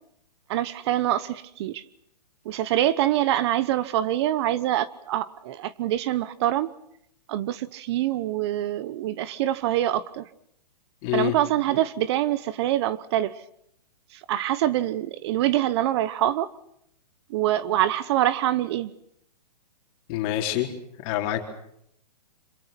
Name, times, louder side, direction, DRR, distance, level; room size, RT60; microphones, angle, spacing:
voice 1, 0.5-1.8 2.4-6.7 7.3-10.3 11.1-13.4 14.1-16.5 17.3-18.9, right 13 dB, 40° right, 1.0 m, -25 dB
voice 2, 11.0-11.4 20.1-20.7 21.0-21.4, left 13 dB, 35° left, 4.2 m, -26 dB
27.5 x 26.5 x 6.0 m
hypercardioid pair, 145°, 21 cm